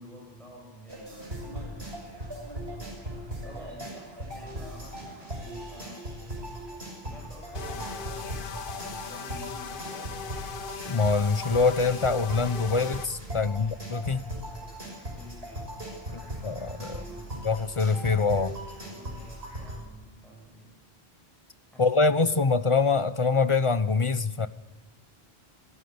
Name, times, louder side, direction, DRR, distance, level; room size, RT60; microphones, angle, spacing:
voice 1, 0.0-2.2 3.4-6.1 7.0-10.2 13.3-17.4 18.9-20.7 21.7-22.3, equal, ahead, -3 dB, 6.7 m, -50 dB
sound 1, 0.9-19.8, right 1 dB, 85° right, 6.6 m, -39 dB
sound 2, 7.5-13.1, left 6 dB, 60° left, 1.1 m, -39 dB
voice 2, 10.9-14.2 16.1-17.0 17.4-18.6 21.8-24.5, left 4 dB, 30° left, 12 dB, 1.0 m, -24 dB
28.5 x 16.0 x 7.9 m, 1.2 s
omnidirectional pair, 1.0 m